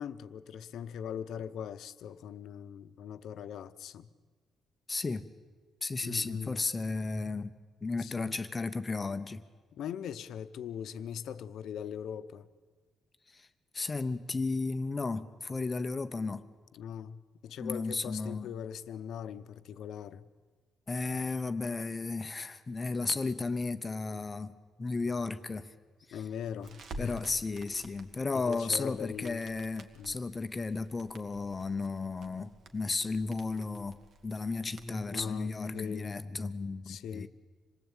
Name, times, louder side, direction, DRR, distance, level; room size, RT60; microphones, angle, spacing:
voice 1, 0.0-4.1 6.0-6.6 8.0-8.4 9.7-12.5 16.7-20.3 26.1-27.3 28.4-29.4 30.0-30.2 35.1-36.2 36.9-37.3, left 8 dB, 65° left, 0.9 m, -40 dB
voice 2, 4.9-5.3 5.8-7.5 7.8-9.4 13.3-13.5 13.7-16.4 17.6-18.5 20.9-25.7 26.1-26.2 27.0-34.0 34.2-37.3, left 3 dB, 20° left, 0.7 m, -34 dB
Crackle, 26.6-35.5, right 2 dB, 50° right, 1.9 m, -51 dB
26.5 x 19.0 x 9.0 m
cardioid pair, 180°, 0 cm